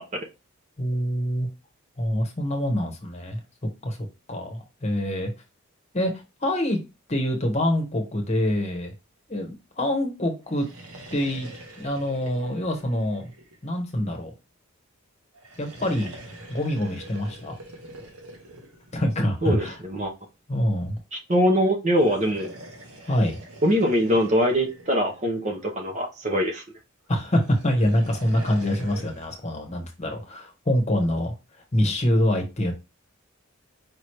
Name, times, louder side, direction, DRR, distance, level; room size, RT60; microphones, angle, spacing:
voice 1, 0.8-1.5 2.0-3.4 3.8-4.0 4.3-5.3 5.9-6.8 7.1-8.9 9.3-10.7 11.1-11.5 11.8-13.3 13.6-14.3 15.6-16.1 16.5-17.5 18.9-19.8 20.5-21.0 23.0-23.4 27.1-31.3 31.7-32.7, left 1 dB, 30° left, 1.1 m, -25 dB
sound 1, 10.4-14.0 15.3-19.7 21.8-25.8 27.1-29.4, right 1 dB, 80° right, 1.3 m, -44 dB
voice 2, 19.4-20.1 21.1-22.5 23.6-26.6, equal, 35° right, 0.7 m, -23 dB
5.1 x 3.1 x 3.1 m
head